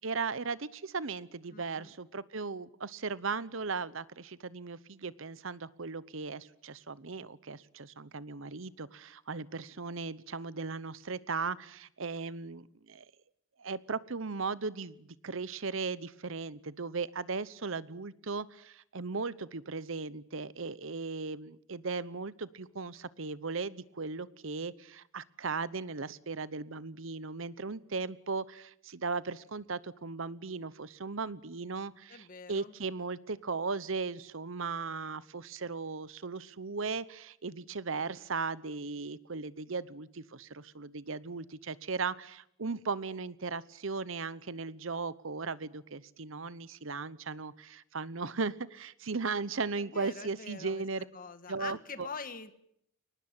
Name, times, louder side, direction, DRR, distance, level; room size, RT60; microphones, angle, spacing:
voice 1, 0.0-13.0 13.6-51.0 51.5-52.1, right 4 dB, 65° right, 18 dB, 0.9 m, -37 dB
voice 2, 1.5-1.9 32.1-32.7 49.8-50.8 51.1-52.5, left 5 dB, 40° left, 12 dB, 1.5 m, -44 dB
23.0 x 19.5 x 8.9 m, 0.72 s
head